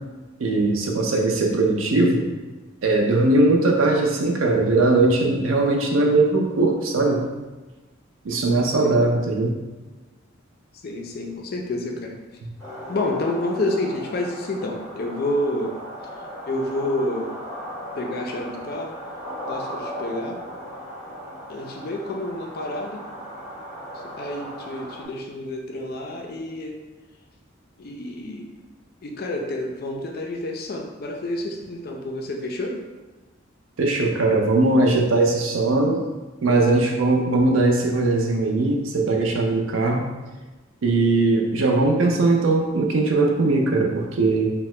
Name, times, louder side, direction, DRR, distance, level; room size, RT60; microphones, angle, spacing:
voice 1, 0.4-2.2 2.8-7.2 8.2-9.5 33.8-36.0 36.4-40.1 40.8-44.5, right 2 dB, 85° right, 1 dB, 0.5 m, -20 dB
voice 2, 8.3-9.0 10.8-12.2 12.9-15.7 16.5-17.3 18.0-18.9 19.5-20.4 21.5-23.0 24.2-26.7 27.8-28.4 29.0-32.8, left 1 dB, 50° left, 1 dB, 0.4 m, -29 dB
sound 1, 12.6-25.1, equal, 15° left, 0.9 m, -37 dB
2.7 x 2.1 x 3.1 m, 1.2 s
head